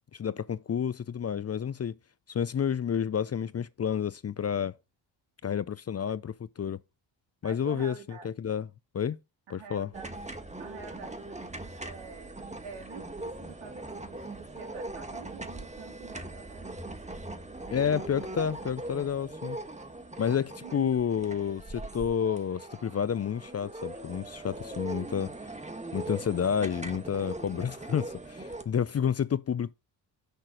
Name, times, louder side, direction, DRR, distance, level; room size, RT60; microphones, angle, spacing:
voice 1, 0.1-1.9 2.3-4.7 5.4-6.8 7.4-7.9 8.2-8.7 8.9-9.2 9.5-9.9 17.7-19.6 20.2-25.3 25.9-29.7, left 8 dB, 30° left, 0.6 m, -30 dB
voice 2, 7.4-8.3 9.5-10.1 10.6-12.3 12.6-16.8 20.6-21.0, right 6 dB, 75° right, 3.7 m, -47 dB
sound 1, 9.9-28.6, right 2 dB, 15° right, 1.6 m, -41 dB
6.8 x 3.9 x 6.4 m
supercardioid pair, 65°, 48 cm